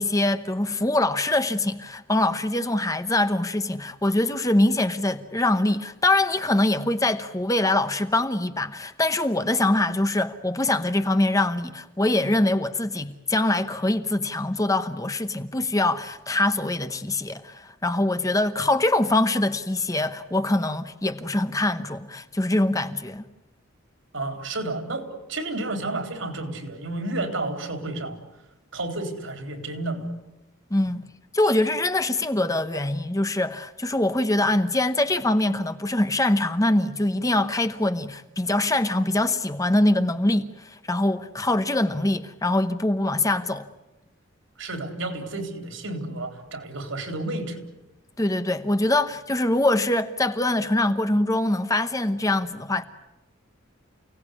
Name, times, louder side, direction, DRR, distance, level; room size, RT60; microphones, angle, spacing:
voice 1, 0.0-23.2 30.7-31.0 31.3-43.7 48.2-52.8, left 2 dB, 15° left, 1.0 m, -23 dB
voice 2, 24.1-28.2 28.7-30.1 44.6-47.6, right 2 dB, 70° right, 4.0 m, -31 dB
29.5 x 18.0 x 9.8 m
head